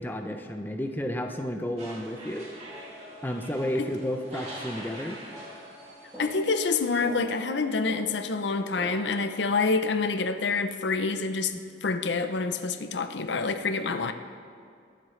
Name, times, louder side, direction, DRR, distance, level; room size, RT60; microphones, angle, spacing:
voice 1, 0.0-2.5 3.2-5.2 11.5-11.6, equal, 10° left, 4 dB, 0.5 m, -32 dB
sound 1, 1.8-7.1, right 1 dB, 35° right, 2.2 m, -45 dB
sound 2, 2.2-9.2, left 1 dB, 5° right, 1.7 m, -46 dB
voice 2, 6.2-11.5 11.8-14.1, left 4 dB, 65° left, 9 dB, 0.6 m, -27 dB
21.5 x 7.7 x 3.2 m, 2.3 s
head